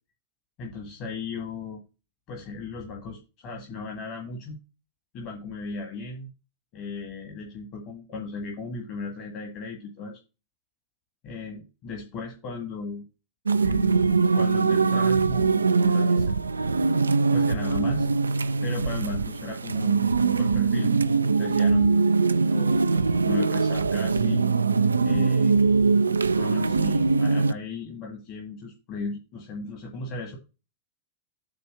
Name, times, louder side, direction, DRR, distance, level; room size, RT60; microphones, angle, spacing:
voice 1, 0.6-1.8 2.3-4.6 5.1-6.3 6.7-10.2 11.2-13.0 13.6-16.3 17.3-18.1 18.6-20.9 21.4-22.2 22.5-24.4 25.0-25.8 26.4-30.4, left 4 dB, 40° left, 2 dB, 1.8 m, -36 dB
sound 1, 13.5-27.5, right 4 dB, 75° right, 0.4 m, -22 dB
8.5 x 3.4 x 6.3 m, 0.29 s
figure-of-eight pair, 90°, 0 cm